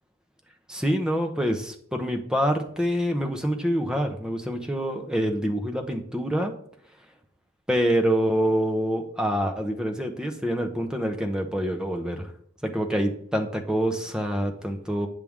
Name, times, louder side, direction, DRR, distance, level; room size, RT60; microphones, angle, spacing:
voice 1, 0.7-6.5 7.7-12.3 12.6-15.1, equal, 5° right, 3 dB, 0.8 m, -26 dB
8.5 x 6.2 x 3.6 m, 0.65 s
head